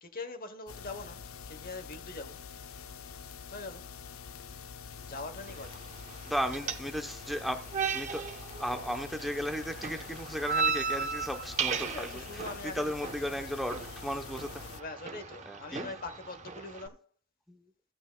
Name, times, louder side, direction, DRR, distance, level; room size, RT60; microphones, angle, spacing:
voice 1, 0.0-2.4 3.5-3.9 5.0-5.9 6.2-6.3 11.8-13.4 14.7-17.1, left 3 dB, 40° left, 1.1 m, -43 dB
sound 1, 0.7-14.8, left 6 dB, 70° left, 0.6 m, -46 dB
sound 2, 5.4-16.9, right 5 dB, 35° right, 0.9 m, -37 dB
voice 2, 6.3-7.6 7.9-8.2 8.6-12.2 12.7-14.6 15.5-15.9 17.5-17.6, equal, ahead, 0.8 m, -35 dB
14.5 x 8.8 x 2.3 m
head